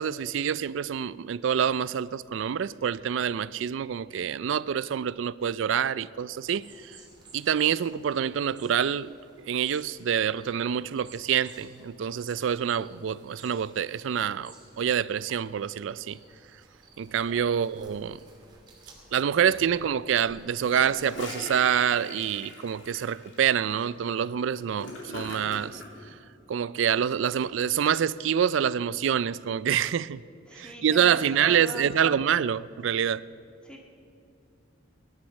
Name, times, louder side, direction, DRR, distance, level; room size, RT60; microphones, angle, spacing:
voice 1, 0.0-7.0 7.3-16.2 17.0-18.2 19.1-25.8 26.5-30.2 30.5-33.2, right 8 dB, 70° right, 0.4 m, -26 dB
sound 1, 6.4-21.2, right 3 dB, 20° right, 2.6 m, -55 dB
voice 2, 17.1-17.4 30.5-31.9 33.6-33.8, left 1 dB, 5° left, 1.7 m, -42 dB
Gurgling / Toilet flush, 20.5-25.9, left 2 dB, 65° left, 2.9 m, -41 dB
17.0 x 11.5 x 6.4 m
head